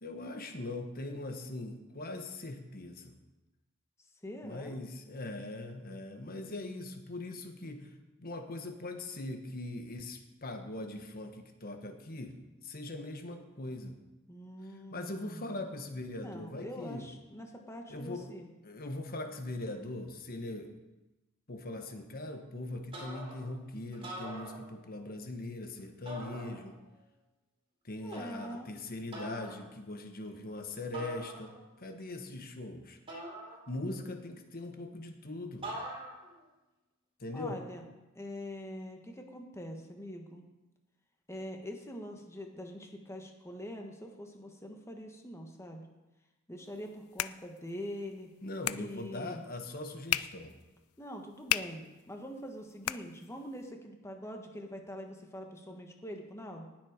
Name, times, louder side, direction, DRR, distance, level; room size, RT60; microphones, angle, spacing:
voice 1, 0.0-3.1 4.4-7.9 8.2-12.3 12.6-13.9 14.9-17.0 17.9-18.3 18.6-20.7 21.5-26.8 27.8-31.5 31.8-33.0 33.7-35.7 37.2-37.6 48.4-50.5, left 2 dB, 45° left, 6 dB, 1.3 m, -41 dB
voice 2, 4.2-4.8 14.3-15.6 16.1-18.5 28.0-28.7 37.3-37.8 38.1-40.4 41.3-45.8 46.5-48.3 48.7-49.4 51.0-56.7, equal, 15° left, 3 dB, 1.5 m, -44 dB
sound 1, 22.9-23.6 23.9-25.1 26.1-27.0 28.1-28.6 29.1-29.6 30.9-31.8 33.1-34.1 35.6-36.4, right 1 dB, 25° right, 3.8 m, -44 dB
sound 2, 46.6-53.7, left 13 dB, 75° left, 0.4 m, -39 dB
19.0 x 7.6 x 5.1 m, 1.0 s
head